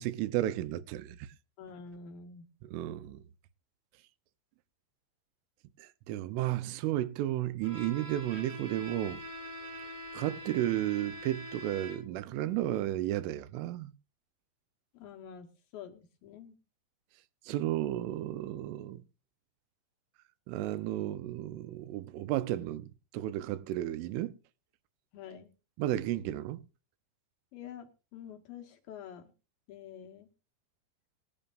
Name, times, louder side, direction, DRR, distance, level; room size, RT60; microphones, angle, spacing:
voice 1, 0.0-1.3 2.6-3.2 5.8-9.2 10.1-13.9 17.5-19.0 20.5-24.3 25.8-26.6, right 14 dB, 80° right, 3.2 m, -33 dB
voice 2, 1.6-2.5 14.9-16.6 25.1-25.5 27.5-29.3 29.7-30.3, left 7 dB, 75° left, 2.2 m, -47 dB
Bowed string instrument, 7.6-12.3, equal, 55° right, 7.6 m, -44 dB
23.5 x 11.0 x 2.5 m
omnidirectional pair, 5.8 m